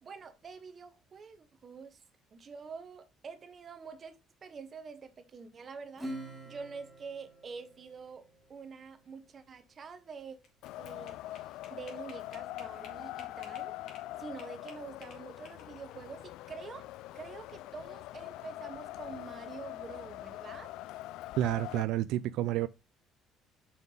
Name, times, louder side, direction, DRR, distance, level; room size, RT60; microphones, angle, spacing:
voice 1, 0.0-2.0 2.3-6.1 6.5-10.4 10.8-13.7 14.2-16.9 17.1-20.7, right 5 dB, 30° right, 1.2 m, -47 dB
Acoustic guitar / Strum, 6.0-8.9, right 1 dB, 5° right, 2.9 m, -45 dB
sound 1, 10.2-14.1 14.4-15.9, left 5 dB, 60° left, 2.8 m, -54 dB
Wind, 10.6-21.8, left 16 dB, 80° left, 0.3 m, -43 dB
voice 2, 21.4-22.7, right 13 dB, 75° right, 0.4 m, -30 dB
7.2 x 6.0 x 4.0 m
cardioid pair, 155°, 0 cm